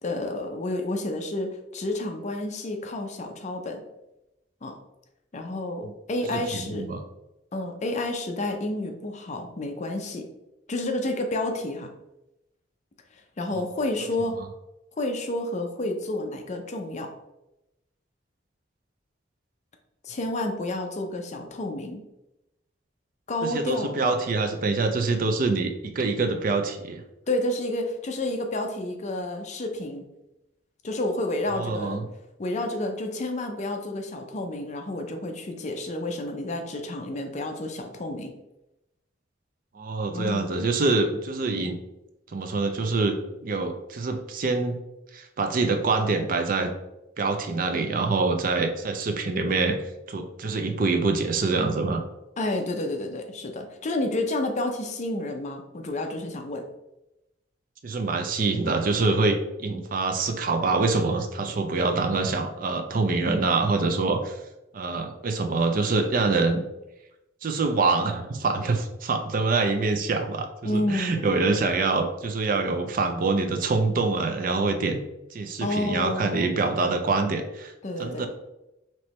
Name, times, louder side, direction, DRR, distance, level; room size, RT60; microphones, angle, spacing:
voice 1, 0.0-3.8 4.6-4.8 5.3-6.9 7.5-10.3 10.7-11.9 13.1-14.4 15.0-17.1 20.0-22.0 23.3-24.0 27.3-30.0 30.8-32.0 32.4-38.3 40.1-40.5 52.4-56.6 70.6-71.4 75.6-76.5 77.8-78.3, left 1 dB, 40° left, 4 dB, 0.5 m, -30 dB
voice 2, 6.5-7.0 13.5-13.6 23.4-27.0 31.5-32.0 39.7-41.8 42.3-43.2 43.4-44.8 45.1-46.7 47.2-49.8 50.1-52.0 57.8-64.4 64.7-66.6 67.4-75.0 75.3-77.7 78.0-78.3, right 3 dB, 45° right, 6 dB, 0.4 m, -25 dB
4.4 x 3.0 x 3.1 m, 0.92 s
head